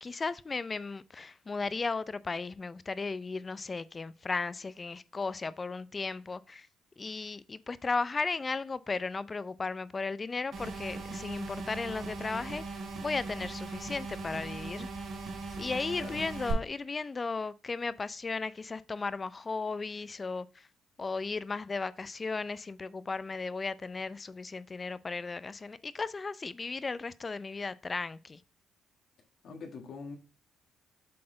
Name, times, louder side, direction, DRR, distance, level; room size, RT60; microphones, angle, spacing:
voice 1, 0.0-6.7 7.0-12.6 13.0-14.9 15.6-20.7 21.0-28.4, left 4 dB, 30° left, 0.4 m, -35 dB
sound 1, 10.5-16.5, right 4 dB, 60° right, 3.7 m, -39 dB
voice 2, 15.5-16.2 29.4-30.2, left 4 dB, 65° left, 1.6 m, -45 dB
7.6 x 3.9 x 3.8 m
cardioid pair, 90°, 0 cm